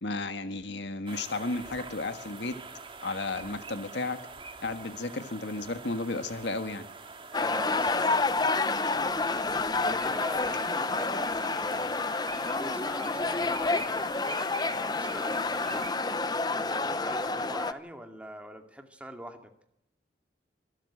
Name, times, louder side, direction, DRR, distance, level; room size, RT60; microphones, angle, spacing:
voice 1, 0.0-2.6 3.0-4.2 4.6-6.9, left 2 dB, 75° left, 9 dB, 1.6 m, -33 dB
sound 1, 1.1-15.9, right 4 dB, 30° right, 2.0 m, -45 dB
sound 2, 7.3-17.7, left 3 dB, 20° left, 0.8 m, -29 dB
voice 2, 7.4-8.3 9.8-12.1 12.6-14.0 14.7-19.5, right 1 dB, 5° right, 5 dB, 2.3 m, -44 dB
24.5 x 13.0 x 8.7 m, 0.76 s
head